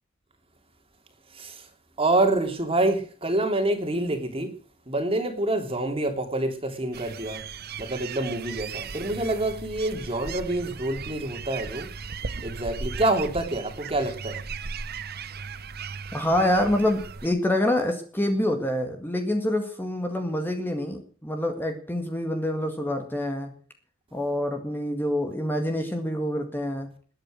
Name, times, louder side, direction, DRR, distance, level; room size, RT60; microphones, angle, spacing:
voice 1, 2.0-4.5 4.9-7.4 7.8-11.9 12.4-14.4, right 2 dB, 25° right, 3.0 m, -26 dB
sound 1, 6.9-17.3, right 5 dB, 50° right, 0.9 m, -37 dB
voice 2, 16.1-23.5 24.1-26.9, left 1 dB, 10° left, 1.9 m, -26 dB
21.0 x 9.0 x 6.4 m
head